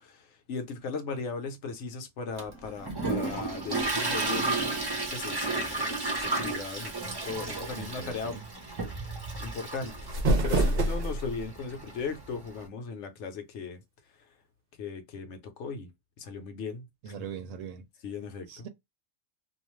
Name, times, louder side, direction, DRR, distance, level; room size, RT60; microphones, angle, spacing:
voice 1, 0.0-4.8 5.1-6.9 7.3-8.4 9.4-9.9 10.3-13.8 14.8-15.9 16.2-17.1 18.0-18.7, left 4 dB, 65° left, 0.9 m, -37 dB
Toilet flush, 2.4-12.6, right 2 dB, 25° right, 0.7 m, -33 dB
voice 2, 7.8-8.4 17.0-17.8 18.5-18.7, right 7 dB, 80° right, 1.0 m, -41 dB
sound 1, 9.8-11.5, right 2 dB, 55° right, 0.8 m, -26 dB
2.4 x 2.3 x 3.0 m
omnidirectional pair, 1.4 m